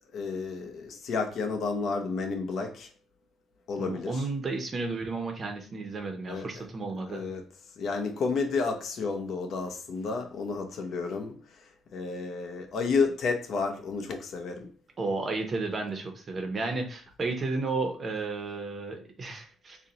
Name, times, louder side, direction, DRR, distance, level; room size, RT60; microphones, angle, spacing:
voice 1, 0.1-2.9 3.7-4.2 6.3-6.6 7.1-7.4 7.8-14.7, left 4 dB, 55° left, 0.5 m, -31 dB
voice 2, 3.8-7.2 15.0-19.8, right 3 dB, 30° right, 0.6 m, -33 dB
4.0 x 2.1 x 3.8 m
cardioid pair, 140°, 0 cm